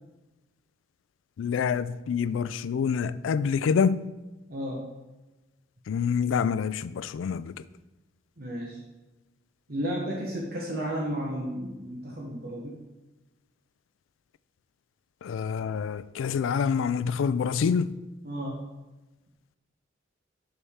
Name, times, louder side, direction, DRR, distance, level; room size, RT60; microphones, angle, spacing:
voice 1, 1.4-4.0 5.9-7.5 15.2-17.9, left 6 dB, 90° left, 0.3 m, -26 dB
voice 2, 4.5-4.8 8.4-8.8 9.7-12.7 18.2-18.6, equal, 50° right, 1.0 m, -33 dB
7.0 x 6.7 x 3.6 m
head